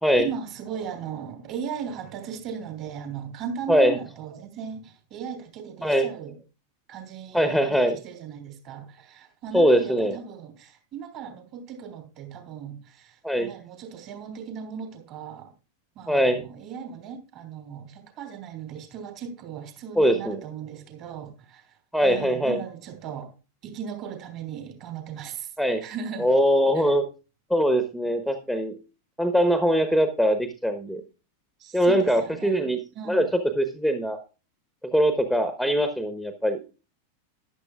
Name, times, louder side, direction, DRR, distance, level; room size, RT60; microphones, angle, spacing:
voice 1, 0.2-6.4 6.9-15.5 15.9-21.6 22.0-23.3 23.6-25.5 25.8-26.3 26.7-26.9 31.6-32.6 32.9-33.3, right 7 dB, 40° right, 3.2 m, -37 dB
voice 2, 7.3-8.0 9.5-10.2 13.2-13.5 16.1-16.4 20.0-20.4 21.9-22.6 25.6-25.8 26.2-27.0 27.5-28.8 29.2-31.0 31.7-32.8 33.1-34.2 34.9-36.6, equal, ahead, 1.1 m, -22 dB
13.5 x 10.5 x 2.4 m
figure-of-eight pair, 90°, 0 cm